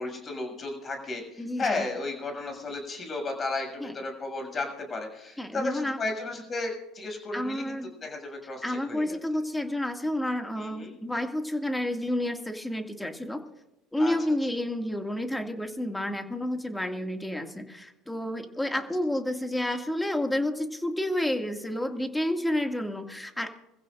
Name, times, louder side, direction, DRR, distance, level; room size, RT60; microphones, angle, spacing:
voice 1, 0.0-7.7 8.0-9.2 10.6-11.0 14.0-14.1 18.7-18.8, left 3 dB, 35° left, 3 dB, 7.0 m, -34 dB
voice 2, 1.4-1.8 3.8-3.9 5.4-6.0 7.3-7.9 8.6-13.4 13.9-23.5, left 1 dB, 5° left, 5 dB, 2.2 m, -30 dB
26.5 x 15.5 x 2.6 m, 0.97 s
hypercardioid pair, 70°, 0 cm